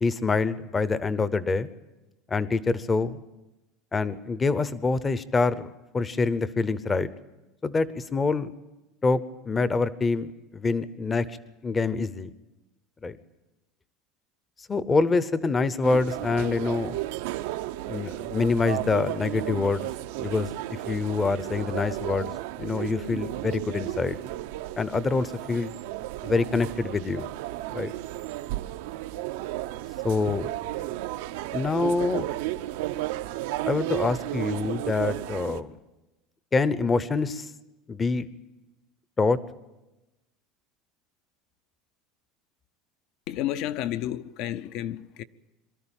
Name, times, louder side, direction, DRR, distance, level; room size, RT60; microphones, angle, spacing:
voice 1, 0.0-1.7 2.3-3.2 3.9-5.7 5.9-7.1 7.6-8.5 9.0-9.2 9.5-11.4 11.6-12.3 13.0-13.2 14.7-17.0 17.9-19.9 20.2-22.3 22.6-24.2 24.8-25.7 26.2-27.3 27.7-27.9 30.0-30.5 31.5-32.2 33.7-35.7 36.5-37.5 37.9-38.3 39.2-39.4, left 4 dB, 15° left, 0.7 m, -26 dB
sound 1, 15.8-35.6, right 15 dB, 80° right, 0.8 m, -33 dB
voice 2, 43.3-45.2, left 12 dB, 50° left, 0.6 m, -31 dB
23.0 x 13.5 x 8.9 m
cardioid pair, 165°, 0 cm